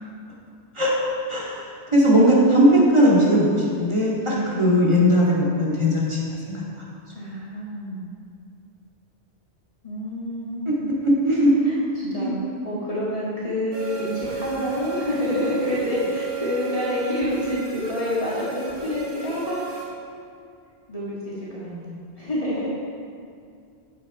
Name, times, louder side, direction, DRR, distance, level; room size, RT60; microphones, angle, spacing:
voice 1, 1.3-6.2 6.5-6.6 10.7-10.8 11.0-11.5 12.2-12.3, equal, 25° right, -6 dB, 2.2 m, -18 dB
voice 2, 4.2-4.6 7.1-8.1 9.8-10.9 11.6-12.3 12.6-19.6 20.9-22.7, left 1 dB, 30° left, -8 dB, 2.0 m, -28 dB
sound 1, 13.7-19.8, right 6 dB, 65° right, 2.1 m, -33 dB
9.7 x 6.5 x 5.6 m, 2.4 s
omnidirectional pair, 1.2 m